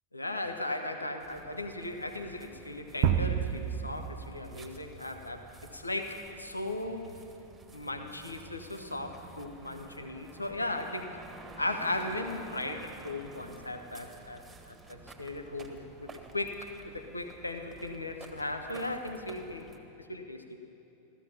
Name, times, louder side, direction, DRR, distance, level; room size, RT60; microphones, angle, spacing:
voice 1, 0.1-7.1 7.7-11.2 11.6-19.7 20.1-20.4, left 2 dB, 80° left, 5 dB, 1.0 m, -37 dB
sound 1, 1.2-19.8, right 3 dB, 15° right, 1.4 m, -51 dB
sound 2, 3.0-5.0, right 9 dB, 50° right, 0.6 m, -30 dB
15.0 x 13.5 x 5.8 m, 3.0 s
figure-of-eight pair, 90°, 0 cm